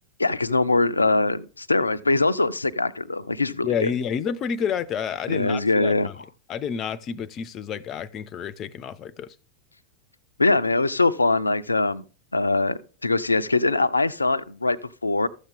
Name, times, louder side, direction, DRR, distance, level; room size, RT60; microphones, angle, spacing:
voice 1, 0.2-3.9 5.3-6.1 10.4-12.0 12.3-15.3, left 3 dB, 80° left, 0.5 m, -22 dB
voice 2, 3.6-6.1 6.5-9.3, left 7 dB, 30° left, 0.5 m, -29 dB
13.5 x 7.3 x 3.5 m
figure-of-eight pair, 90°, 0 cm